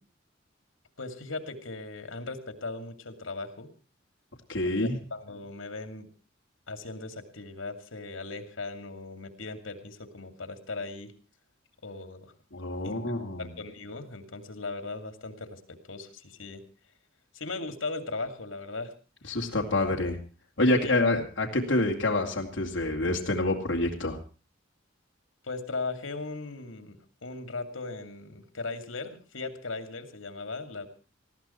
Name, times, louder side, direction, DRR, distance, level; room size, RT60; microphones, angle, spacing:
voice 1, 1.0-3.7 4.8-6.1 6.7-11.1 11.8-12.3 12.8-12.9 13.4-16.6 17.3-18.9 20.8-20.9 25.4-30.9, left 3 dB, 85° left, 8 dB, 2.4 m, -38 dB
voice 2, 4.5-5.0 12.5-13.5 19.3-20.2 20.6-24.2, left 2 dB, 65° left, 0 dB, 2.5 m, -27 dB
19.5 x 15.0 x 4.4 m, 0.36 s
head